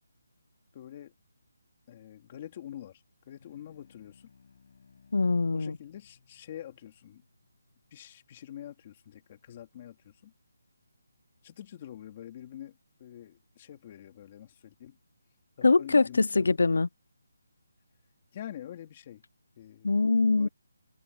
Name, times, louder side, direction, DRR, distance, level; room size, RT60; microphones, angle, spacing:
voice 1, 0.7-1.1 1.9-4.3 5.5-7.2 7.9-10.3 11.4-15.0 15.6-16.6 18.3-19.2 19.6-20.0 20.4-20.5, left 11 dB, 20° left, 2.9 m, -46 dB
sound 1, 3.4-8.3, left 5 dB, 40° left, 7.0 m, -62 dB
voice 2, 5.1-5.8 15.6-16.9 19.8-20.5, left 3 dB, 65° left, 0.4 m, -23 dB
open air
hypercardioid pair, 175°, 0 cm